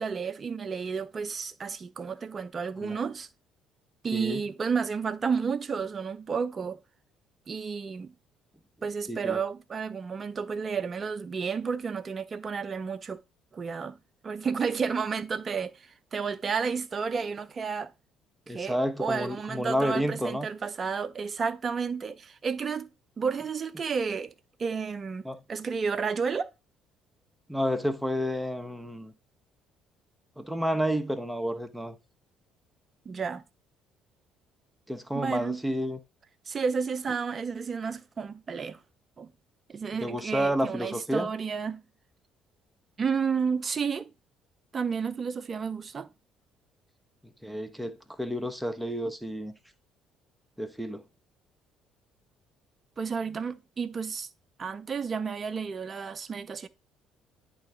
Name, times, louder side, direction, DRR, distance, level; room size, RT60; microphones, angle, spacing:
voice 1, 0.0-3.3 4.0-6.8 7.5-8.1 8.8-13.2 13.5-14.0 14.2-17.9 18.5-22.9 23.2-24.3 24.6-26.5 33.1-33.4 35.1-35.6 36.5-38.8 39.2-39.3 39.7-41.8 43.0-44.1 44.7-46.1 53.0-54.3 54.6-56.7, right 5 dB, 35° right, 0.6 m, -31 dB
voice 2, 18.5-20.5 25.2-25.4 27.5-29.1 30.4-32.0 34.9-36.0 40.0-41.3 47.4-49.5 50.6-51.0, equal, ahead, 1.0 m, -30 dB
10.5 x 3.8 x 3.5 m
figure-of-eight pair, 50°, 0 cm